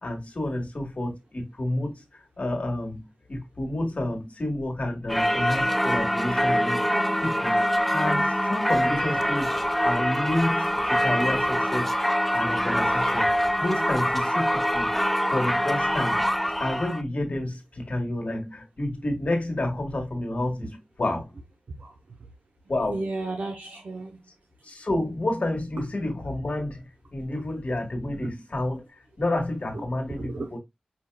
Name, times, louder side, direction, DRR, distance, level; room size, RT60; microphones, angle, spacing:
voice 1, 0.0-3.0 3.3-11.9 12.3-13.3 13.6-16.2 16.6-21.3 22.7-23.0 24.6-26.8 27.1-28.9 29.2-30.6, left 1 dB, 55° left, 1.5 m, -30 dB
Singing / Church bell, 5.1-17.0, equal, 5° left, 0.4 m, -24 dB
voice 2, 22.9-24.2 29.7-29.8 30.1-30.6, right 2 dB, 75° right, 0.7 m, -33 dB
5.4 x 2.7 x 2.2 m
cardioid pair, 45°, 3 cm